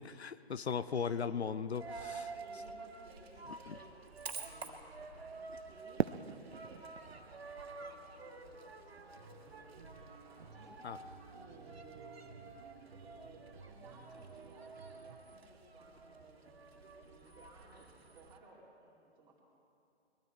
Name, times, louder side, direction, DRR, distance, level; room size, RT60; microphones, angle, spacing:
voice 1, 0.2-2.3 3.7-3.8 10.8-11.0, left 6 dB, 75° left, 13 dB, 0.7 m, -37 dB
Coin (dropping), 1.7-18.4, right 4 dB, 65° right, 1.8 m, -50 dB
voice 2, 2.3-3.9 4.2-11.0 11.3-19.4, right 2 dB, 15° right, -3 dB, 2.3 m, -60 dB
Fireworks, 6.0-9.0, right 7 dB, 85° right, 0.5 m, -40 dB
sound 1, 9.1-15.2, right 5 dB, 50° right, 1.1 m, -57 dB
21.5 x 13.0 x 4.4 m, 2.7 s
figure-of-eight pair, 145°, 32 cm